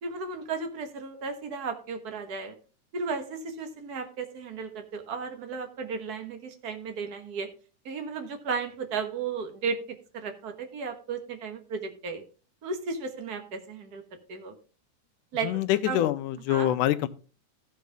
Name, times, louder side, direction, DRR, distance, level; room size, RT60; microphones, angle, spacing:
voice 1, 0.0-2.6 2.9-7.5 7.8-9.8 10.1-12.2 12.6-14.0 14.3-14.5 15.3-15.6 15.9-16.1 16.5-16.7, right 5 dB, 50° right, 6 dB, 1.2 m, -34 dB
voice 2, 15.4-17.1, left 13 dB, 85° left, 11 dB, 2.2 m, -25 dB
15.0 x 6.5 x 3.5 m, 0.35 s
omnidirectional pair, 3.5 m